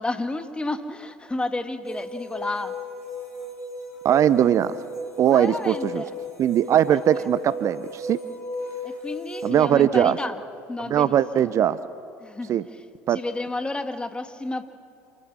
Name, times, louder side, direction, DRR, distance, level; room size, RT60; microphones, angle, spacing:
voice 1, 0.0-2.7 5.3-6.1 8.8-10.4 10.7-11.2 12.2-12.8 13.1-14.6, left 2 dB, 15° left, 9 dB, 1.5 m, -31 dB
sound 1, 1.8-9.5, left 1 dB, 90° left, 4.2 m, -35 dB
voice 2, 4.0-4.8 5.2-6.0 6.4-8.2 9.4-10.2 10.9-11.8 12.5-12.6 13.1-13.2, right 10 dB, 40° right, 16 dB, 0.6 m, -20 dB
28.0 x 14.5 x 7.3 m, 2.7 s
hypercardioid pair, 70°, 8 cm